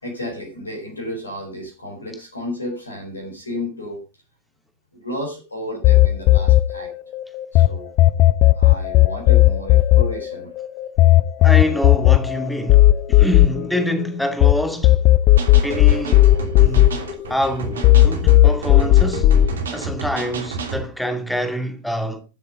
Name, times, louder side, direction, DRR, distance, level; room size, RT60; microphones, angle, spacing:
voice 1, 0.0-4.0 4.9-6.9 7.5-7.9 8.5-10.5 15.5-15.6, left 1 dB, 75° left, 4.4 m, -32 dB
sound 1, 5.8-7.7 8.0-14.5 14.8-17.5 17.8-19.5, left 16 dB, 40° left, 0.8 m, -13 dB
voice 2, 11.4-15.0 15.6-17.0 17.3-19.3 19.7-22.2, equal, ahead, 2.4 m, -26 dB
sound 2, 15.4-20.9, right 4 dB, 65° right, 3.0 m, -30 dB
14.0 x 7.4 x 5.1 m
figure-of-eight pair, 90°, 0 cm